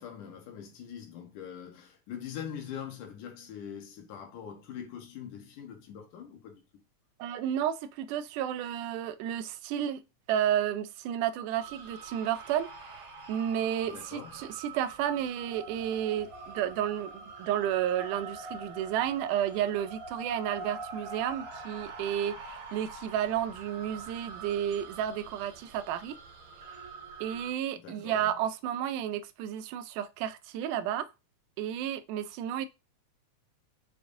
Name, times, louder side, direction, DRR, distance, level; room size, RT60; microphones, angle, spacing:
voice 1, 0.0-6.6 13.8-14.5 27.8-28.3, left 8 dB, 85° left, 2.9 m, -43 dB
voice 2, 7.2-26.2 27.2-31.1 31.6-32.7, right 10 dB, 90° right, 2.1 m, -32 dB
sound 1, 11.6-27.5, right 3 dB, 50° right, 2.1 m, -44 dB
7.0 x 5.1 x 2.7 m
omnidirectional pair, 3.5 m